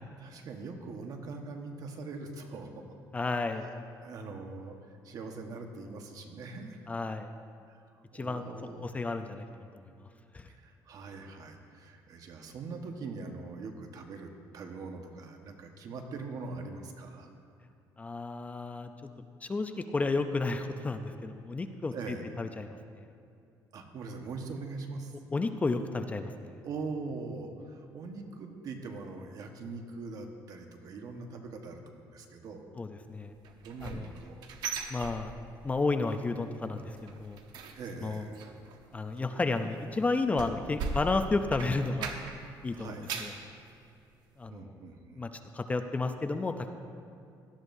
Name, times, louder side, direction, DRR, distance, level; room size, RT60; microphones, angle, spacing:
voice 1, 0.2-2.8 4.0-4.8 5.0-6.8 7.7-7.8 8.1-8.9 10.5-17.3 21.9-22.2 23.7-25.1 26.6-32.7 33.6-34.5 37.7-38.4 42.7-43.1 44.5-45.2, right 3 dB, 55° right, 4 dB, 1.3 m, -42 dB
voice 2, 3.1-3.7 6.9-7.3 8.1-8.5 8.8-10.1 10.3-10.5 18.0-18.9 19.4-21.9 22.4-23.1 25.3-26.6 32.8-33.3 33.8-34.1 34.9-35.3 35.6-37.4 38.0-38.3 38.9-42.1 42.6-43.3 44.4-44.7 45.2-46.7, left 3 dB, 20° left, 7 dB, 0.5 m, -32 dB
sound 1, 33.4-35.8 36.1-36.4 36.7-42.5 42.8-43.4 43.9-44.0 44.5-44.6, right 4 dB, 75° right, 1.0 m, -40 dB
17.5 x 12.5 x 2.7 m, 2.5 s
cardioid pair, 125°, 7 cm